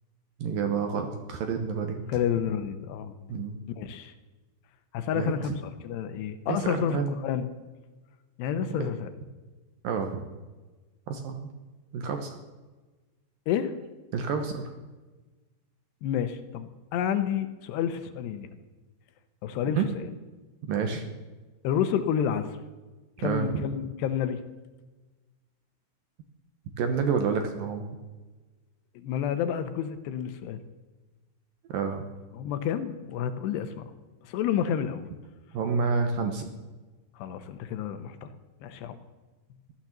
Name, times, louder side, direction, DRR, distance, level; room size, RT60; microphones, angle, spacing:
voice 1, 0.4-2.0 3.3-3.6 5.2-5.3 6.5-7.1 8.6-8.9 9.8-10.3 11.1-11.5 11.9-12.4 14.1-14.6 19.8-19.9 20.6-21.0 23.2-23.6 26.8-27.9 31.7-32.1 35.5-36.5, right 5 dB, 70° right, 6 dB, 2.4 m, -29 dB
voice 2, 2.1-3.1 3.8-4.1 4.9-5.6 5.8-7.5 8.4-9.1 13.5-13.7 16.0-18.5 19.4-20.1 21.6-22.5 23.2-24.4 29.0-30.6 32.3-33.8 34.2-35.1 37.2-38.3 38.6-39.0, left 9 dB, 75° left, 10 dB, 2.9 m, -29 dB
16.0 x 12.0 x 7.3 m, 1.2 s
omnidirectional pair, 5.1 m